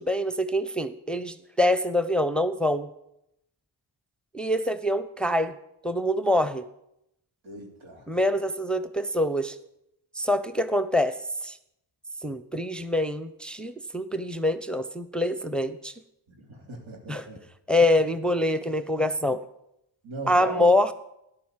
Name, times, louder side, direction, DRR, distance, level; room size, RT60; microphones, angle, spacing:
voice 1, 0.0-2.9 4.3-5.5 5.8-6.6 8.1-9.6 10.1-11.2 11.4-11.6 12.2-15.9 17.1-17.3 17.7-19.4 20.3-20.9, left 1 dB, ahead, 10 dB, 0.9 m, -25 dB
voice 2, 7.4-8.1 16.3-17.4 20.0-20.7, right 2 dB, 75° right, 2 dB, 3.4 m, -38 dB
13.0 x 11.0 x 7.5 m, 0.81 s
cardioid pair, 50°, 48 cm